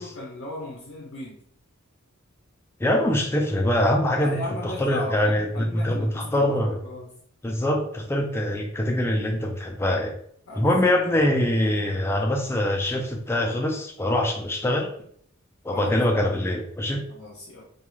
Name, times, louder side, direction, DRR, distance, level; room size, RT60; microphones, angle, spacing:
voice 1, 0.0-1.4 4.2-7.1 10.5-10.9 12.8-12.9 15.7-16.0 17.1-17.6, left 2 dB, 55° left, -3 dB, 0.5 m, -37 dB
voice 2, 2.8-6.8 7.4-10.2 10.6-14.9 15.6-17.0, left 1 dB, 10° left, 1 dB, 0.3 m, -24 dB
2.4 x 2.3 x 3.0 m, 0.65 s
head